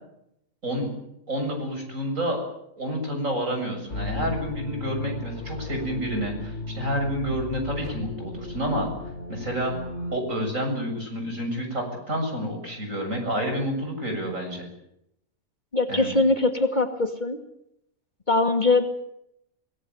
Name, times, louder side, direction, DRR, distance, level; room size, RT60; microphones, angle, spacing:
voice 1, 0.6-0.9 1.3-2.4 2.8-8.9 9.3-9.8 10.1-14.7 15.9-16.2, equal, 60° right, 3 dB, 7.8 m, -29 dB
sound 1, 3.9-10.2, left 2 dB, 50° left, 3.1 m, -35 dB
voice 2, 15.7-17.4 18.3-18.9, left 2 dB, 30° left, 5 dB, 2.4 m, -22 dB
24.5 x 19.0 x 9.5 m, 0.78 s
omnidirectional pair, 1.5 m